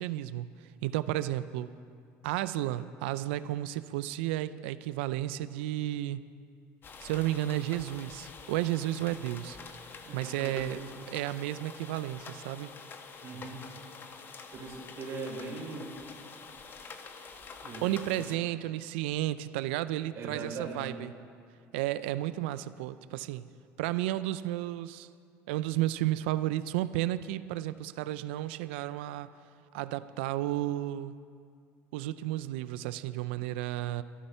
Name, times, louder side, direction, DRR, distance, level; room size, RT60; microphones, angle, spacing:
voice 1, 0.0-1.7 2.2-6.2 7.0-9.6 10.1-10.8 11.1-12.7 17.8-21.1 21.7-23.5 23.8-25.1 25.5-29.3 29.7-31.2 31.9-34.0, right 14 dB, 90° right, 15 dB, 0.4 m, -32 dB
sound 1, 6.8-18.4, left 5 dB, 40° left, 1.1 m, -47 dB
voice 2, 10.0-10.9 13.2-13.6 14.5-15.9 17.6-17.8 18.2-18.3 20.1-20.9, right 4 dB, 50° right, 0 dB, 3.3 m, -40 dB
13.0 x 11.5 x 5.6 m, 2.3 s
supercardioid pair, 100°, 6 cm